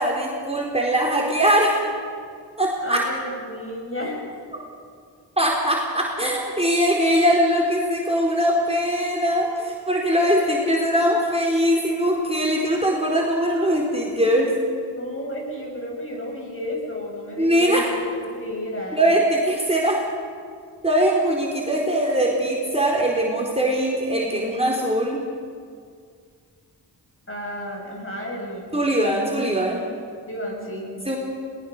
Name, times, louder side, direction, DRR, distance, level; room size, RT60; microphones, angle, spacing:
voice 1, 0.0-1.8 2.6-3.0 5.4-14.5 17.4-17.8 18.9-20.0 20.8-25.2 28.7-29.8 31.1-31.2, equal, 15° right, -2 dB, 4.1 m, -21 dB
voice 2, 2.8-4.2 15.0-17.8 18.2-19.0 27.3-28.7 30.3-30.9, left 1 dB, 30° left, -1 dB, 7.6 m, -32 dB
22.0 x 20.0 x 6.7 m, 2.1 s
cardioid pair, 55°, 42 cm